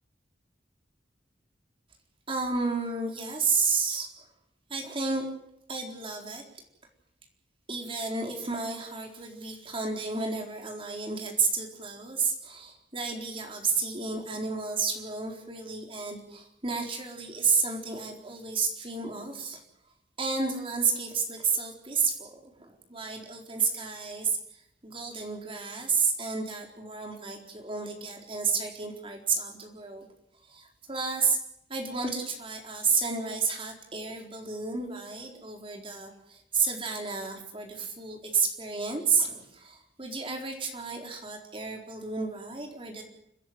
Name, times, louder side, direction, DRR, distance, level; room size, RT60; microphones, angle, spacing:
voice 1, 2.3-4.3 4.7-5.2 5.7-6.4 7.7-19.6 20.2-24.4 24.8-30.1 30.5-31.4 31.7-43.0, right 5 dB, 30° right, 2 dB, 4.2 m, -31 dB
30.0 x 11.0 x 9.5 m, 0.78 s
head